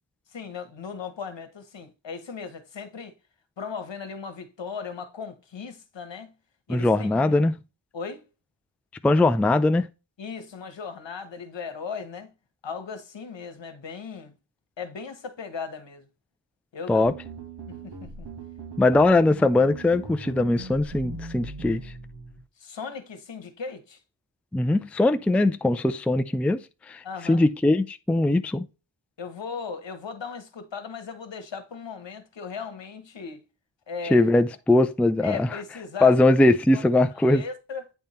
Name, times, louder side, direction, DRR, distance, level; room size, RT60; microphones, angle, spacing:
voice 1, 0.3-3.1 3.6-6.3 6.7-7.4 7.9-8.3 10.2-12.3 12.6-14.3 14.8-16.1 16.7-17.1 17.7-18.3 22.6-24.0 27.0-27.5 29.2-33.4 33.9-34.2 35.2-36.1 36.7-36.8 37.1-37.9, left 5 dB, 70° left, 1.4 m, -37 dB
voice 2, 6.7-7.6 9.0-9.9 16.9-17.1 18.8-21.8 24.5-28.6 34.1-35.5 36.0-37.4, left 2 dB, 5° left, 0.4 m, -21 dB
sound 1, 17.0-22.4, right 3 dB, 60° right, 1.9 m, -40 dB
9.1 x 3.6 x 4.3 m
wide cardioid pair, 90°, 46 cm